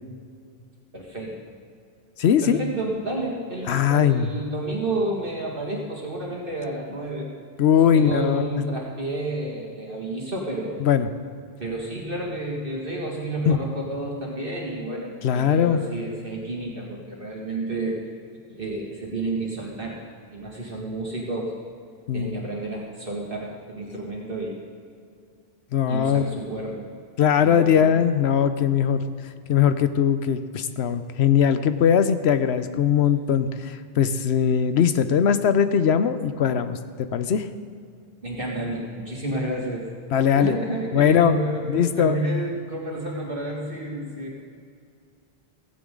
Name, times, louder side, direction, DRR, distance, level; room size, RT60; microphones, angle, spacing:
voice 1, 0.9-1.4 2.4-7.3 7.9-10.8 11.6-18.0 18.5-20.0 20.3-21.5 22.1-24.6 25.9-26.9 27.4-27.9 38.2-39.9 40.3-44.4, right 2 dB, 55° right, -3 dB, 2.4 m, -30 dB
voice 2, 2.2-2.6 3.7-4.3 7.6-8.6 10.8-11.1 13.5-13.6 15.2-15.8 22.1-22.4 25.7-26.3 27.2-29.1 29.5-37.5 40.1-40.6 40.9-41.4 41.7-42.2, left 8 dB, 90° left, 11 dB, 1.0 m, -20 dB
16.5 x 16.0 x 3.8 m, 2.3 s
omnidirectional pair, 1.1 m